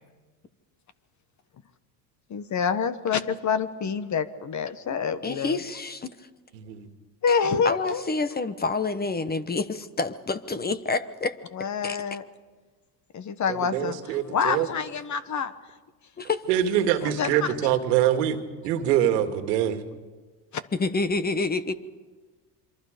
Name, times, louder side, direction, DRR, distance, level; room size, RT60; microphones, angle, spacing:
voice 1, 2.3-5.6 7.2-8.0 11.5-12.2 13.1-15.5 17.0-17.7 20.5-20.6, left 6 dB, 35° left, 12 dB, 1.4 m, -27 dB
voice 2, 5.2-6.1 7.6-11.3 11.8-12.0 16.2-16.4 20.8-21.7, left 3 dB, 20° left, 13 dB, 1.1 m, -28 dB
voice 3, 6.5-6.9 13.5-14.7 16.5-18.4 18.6-19.8, right 10 dB, 85° right, 7 dB, 2.2 m, -24 dB
27.0 x 23.5 x 5.2 m, 1.3 s
supercardioid pair, 95°, 48 cm